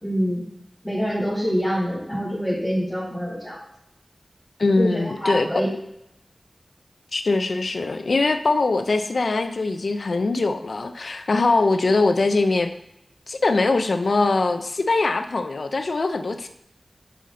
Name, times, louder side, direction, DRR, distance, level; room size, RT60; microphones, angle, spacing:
voice 1, 0.0-0.4 0.8-3.6 4.8-5.7, equal, 10° left, -10 dB, 2.4 m, -25 dB
voice 2, 4.6-5.5 7.1-12.7 13.3-16.5, left 3 dB, 80° left, 8 dB, 0.5 m, -22 dB
7.0 x 4.2 x 3.7 m, 0.82 s
wide cardioid pair, 85°, 0 cm